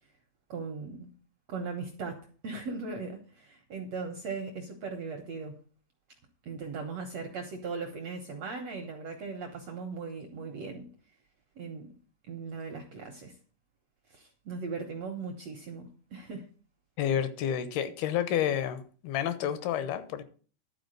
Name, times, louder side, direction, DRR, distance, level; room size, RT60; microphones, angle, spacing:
voice 1, 0.5-1.1 1.5-5.6 6.4-10.9 11.6-11.9 12.3-13.4 14.1-16.4, right 4 dB, 75° right, 1.5 m, -38 dB
voice 2, 17.0-20.2, left 9 dB, 85° left, 2.9 m, -30 dB
12.0 x 4.6 x 7.8 m
omnidirectional pair, 4.5 m